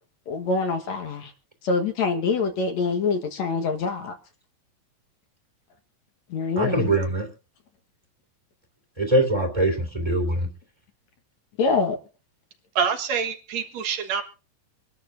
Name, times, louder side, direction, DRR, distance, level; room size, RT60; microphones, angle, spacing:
voice 1, 0.3-1.3 1.6-4.2 6.3-6.9 11.6-12.0, left 4 dB, 60° left, 5 dB, 2.3 m, -25 dB
voice 2, 6.6-7.3 9.0-10.5, right 1 dB, 10° right, 2 dB, 2.5 m, -22 dB
voice 3, 12.8-14.2, right 6 dB, 60° right, 6 dB, 2.2 m, -26 dB
25.5 x 11.5 x 2.6 m, 0.34 s
omnidirectional pair, 4.1 m